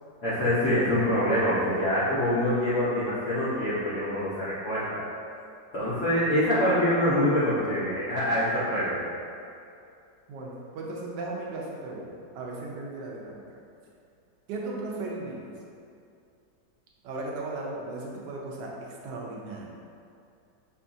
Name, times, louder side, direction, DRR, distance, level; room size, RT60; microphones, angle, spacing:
voice 1, 0.2-5.0 5.7-9.1, left 1 dB, 55° left, -13 dB, 0.9 m, -25 dB
voice 2, 10.3-13.6 14.5-15.5 17.0-19.6, right 2 dB, 85° right, -3 dB, 1.3 m, -36 dB
5.6 x 2.4 x 2.6 m, 2.5 s
omnidirectional pair, 1.9 m